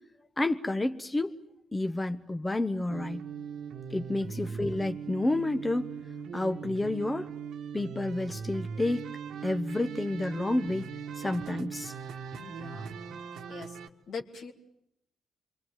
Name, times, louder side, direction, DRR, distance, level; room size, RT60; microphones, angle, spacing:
voice 1, 0.4-1.3 1.7-3.2 3.9-5.9 6.3-7.3 7.7-9.0 9.4-10.9 11.2-11.9, left 2 dB, 20° left, 8 dB, 1.2 m, -30 dB
sound 1, 2.9-13.9, right 6 dB, 75° right, 1.5 m, -40 dB
voice 2, 12.4-13.0 13.5-13.8 14.1-14.5, left 5 dB, 70° left, 2 dB, 2.8 m, -42 dB
28.0 x 23.5 x 9.0 m, 0.80 s
hypercardioid pair, 50°, 0 cm